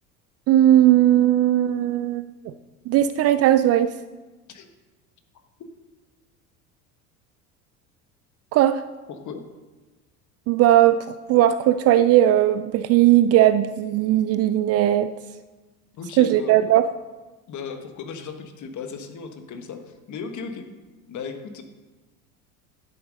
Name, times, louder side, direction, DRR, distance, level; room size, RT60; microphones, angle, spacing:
voice 1, 0.5-2.5 2.9-3.9 8.5-8.8 10.5-15.1 16.2-16.9, right 12 dB, 35° right, 12 dB, 0.4 m, -18 dB
voice 2, 9.1-9.4 15.9-16.6 17.5-20.7 21.1-21.6, left 5 dB, 40° left, 6 dB, 1.5 m, -36 dB
10.0 x 8.1 x 5.3 m, 1.2 s
hypercardioid pair, 70°, 44 cm